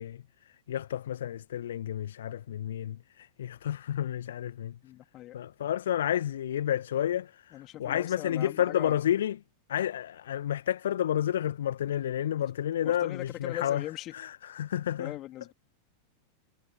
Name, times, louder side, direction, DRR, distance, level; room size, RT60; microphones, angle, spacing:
voice 1, 0.0-4.8 5.3-9.4 9.7-13.8 14.1-15.1, left 10 dB, 60° left, 1.7 m, -31 dB
voice 2, 4.8-5.4 7.5-9.0 12.8-14.1 15.0-15.5, left 15 dB, 35° left, 3.5 m, -40 dB
figure-of-eight pair, 90°, 0 cm